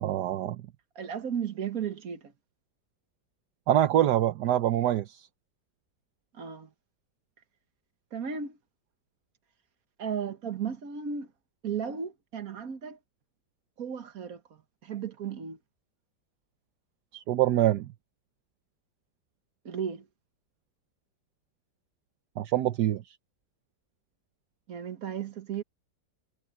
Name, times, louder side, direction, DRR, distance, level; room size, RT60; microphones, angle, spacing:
voice 1, 0.0-0.6 3.7-5.2 17.1-17.9 22.4-23.0, right 12 dB, 75° right, 1.4 m, -25 dB
voice 2, 1.0-2.3 6.3-6.7 8.1-8.6 10.0-11.3 11.6-13.0 13.8-15.6 19.7-20.1 24.7-25.6, right 7 dB, 60° right, 1.9 m, -35 dB
omnidirectional pair, 1.8 m